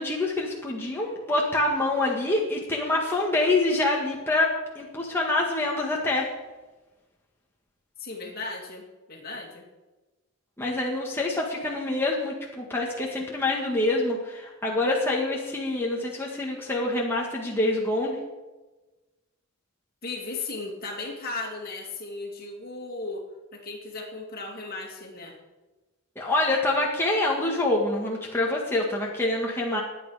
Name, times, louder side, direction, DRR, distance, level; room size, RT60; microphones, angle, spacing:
voice 1, 0.0-6.3 10.6-18.2 26.1-29.8, left 2 dB, 10° left, -3 dB, 1.7 m, -26 dB
voice 2, 8.0-8.8 9.1-9.7 20.0-23.3 23.5-25.4, left 3 dB, 45° left, 0 dB, 2.8 m, -36 dB
21.5 x 8.9 x 5.0 m, 1.2 s
head